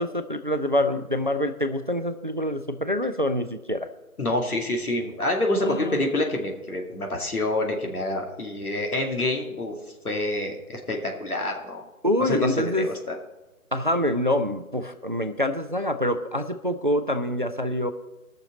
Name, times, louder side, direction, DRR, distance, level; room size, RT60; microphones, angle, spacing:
voice 1, 0.0-3.9 5.6-6.0 12.0-12.9 13.7-17.9, left 1 dB, 40° right, 9 dB, 0.4 m, -26 dB
voice 2, 4.2-9.8 10.0-11.8 12.3-13.1, left 1 dB, 80° left, 1 dB, 2.3 m, -27 dB
19.5 x 6.5 x 3.9 m, 1.0 s
figure-of-eight pair, 150°, 43 cm